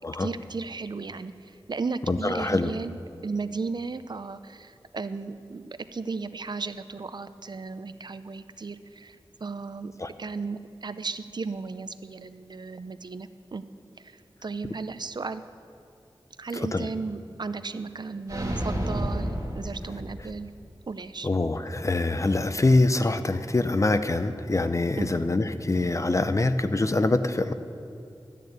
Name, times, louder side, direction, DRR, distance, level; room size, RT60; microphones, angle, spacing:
voice 1, 0.2-9.9 10.2-13.6 14.0-15.4 16.4-20.5 20.9-21.3 25.0-25.1, right 4 dB, 55° right, 12 dB, 0.5 m, -35 dB
voice 2, 2.1-2.7 10.0-10.1 16.7-16.9 21.2-27.5, left 2 dB, 35° left, 10 dB, 0.6 m, -24 dB
sound 1, 18.3-20.5, right 1 dB, 35° right, 1.9 m, -30 dB
12.5 x 6.7 x 8.7 m, 2.4 s
wide cardioid pair, 85°, 9 cm